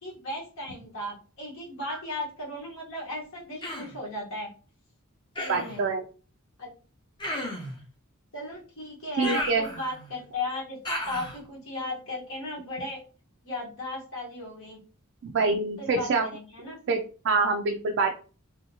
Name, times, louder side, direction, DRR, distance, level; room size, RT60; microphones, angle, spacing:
voice 1, 0.0-4.5 5.4-5.8 6.6-6.7 8.3-10.8 11.1-13.0 13.4-14.8 15.8-16.8, left 1 dB, 65° left, -3 dB, 1.1 m, -36 dB
Human voice, 3.6-4.0 5.4-5.8 7.2-7.8 9.2-10.1 10.9-11.4, left 1 dB, 20° left, 0.6 m, -34 dB
voice 2, 5.5-6.0 9.2-9.6 15.2-16.3 16.9-17.0 17.2-18.1, right 4 dB, 60° right, 4 dB, 0.3 m, -25 dB
2.8 x 2.7 x 2.6 m, 0.37 s
head